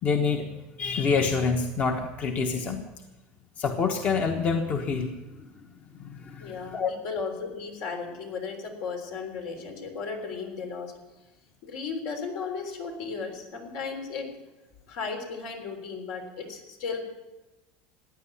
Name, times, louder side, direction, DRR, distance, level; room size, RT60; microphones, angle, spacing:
voice 1, 0.0-2.9 3.6-5.7 5.9-6.9, left 5 dB, 35° left, 5 dB, 1.1 m, -27 dB
voice 2, 6.4-10.9 11.6-14.4 14.9-17.0, left 5 dB, 70° left, 4 dB, 3.7 m, -35 dB
15.5 x 10.0 x 8.5 m, 1.1 s
cardioid pair, 145°, 5 cm